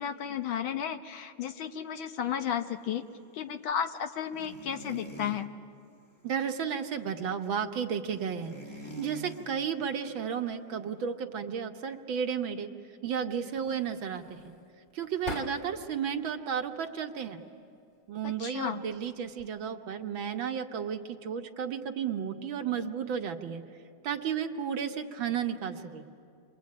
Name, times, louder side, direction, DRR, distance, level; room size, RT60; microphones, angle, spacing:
voice 1, 0.0-3.0 3.3-5.5 18.2-18.8, left 8 dB, 70° left, 8 dB, 1.7 m, -33 dB
sound 1, 4.3-5.4 8.1-9.5, equal, 15° left, 1.3 m, -44 dB
voice 2, 6.2-8.5 9.0-12.7 13.0-14.4 14.9-17.4 18.1-23.6 24.0-26.0, right 7 dB, 65° right, 5 dB, 1.9 m, -33 dB
sound 2, 13.5-16.0 16.4-17.3 18.2-18.6 18.9-19.7, left 1 dB, 40° left, 2.6 m, -44 dB
29.0 x 23.5 x 8.7 m, 2.4 s
omnidirectional pair, 2.4 m